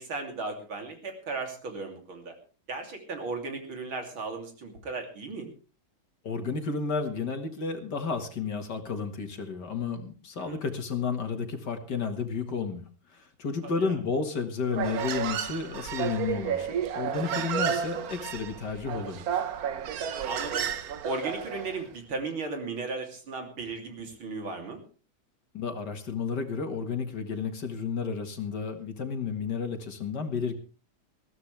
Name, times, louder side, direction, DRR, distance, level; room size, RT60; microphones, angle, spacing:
voice 1, 0.0-2.3 2.7-5.5 10.4-10.6 13.6-14.0 20.2-20.7 21.0-24.8, right 3 dB, 75° right, 4 dB, 3.9 m, -36 dB
voice 2, 6.2-12.9 13.1-19.4 25.5-30.5, left 5 dB, 55° left, 7 dB, 2.4 m, -32 dB
Human voice, 14.7-21.8, right 8 dB, 55° right, 1.2 m, -32 dB
20.5 x 15.0 x 3.4 m, 0.35 s
omnidirectional pair, 2.2 m